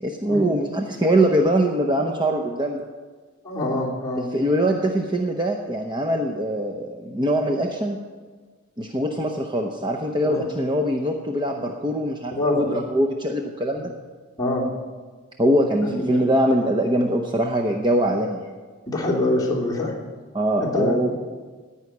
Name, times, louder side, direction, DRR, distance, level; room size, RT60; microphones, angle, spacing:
voice 1, 0.0-2.9 4.2-8.0 8.8-13.9 15.4-18.5 20.3-21.1, right 1 dB, 20° right, 2 dB, 0.7 m, -22 dB
voice 2, 3.4-4.3 10.2-10.4 12.3-12.8 13.8-13.9 14.4-14.7 15.8-16.2 18.9-19.9 20.6-20.9, left 1 dB, 15° left, -5 dB, 2.7 m, -25 dB
14.0 x 5.7 x 9.6 m, 1.4 s
head